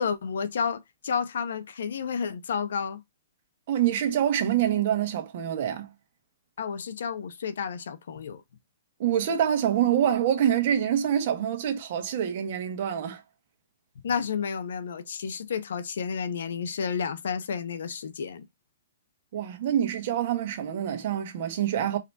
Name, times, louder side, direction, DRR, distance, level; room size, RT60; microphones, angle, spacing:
voice 1, 0.0-3.0 6.6-8.4 14.0-18.5, left 6 dB, 70° left, 0.8 m, -31 dB
voice 2, 3.7-5.9 9.0-13.2 19.3-22.0, right 10 dB, 45° right, 1.3 m, -26 dB
4.8 x 3.0 x 3.3 m
hypercardioid pair, 170°, 0 cm